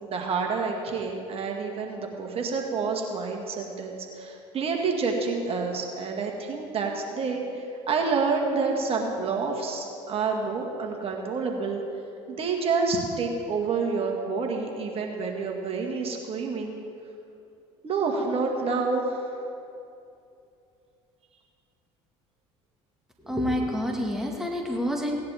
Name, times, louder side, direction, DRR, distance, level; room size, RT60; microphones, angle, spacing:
voice 1, 0.0-11.8 12.3-16.8 17.8-19.4, right 4 dB, 40° right, 1 dB, 2.0 m, -28 dB
voice 2, 23.2-25.3, left 1 dB, 5° right, 0 dB, 1.9 m, -28 dB
17.5 x 10.0 x 3.6 m, 2.6 s
hypercardioid pair, 75°, 14 cm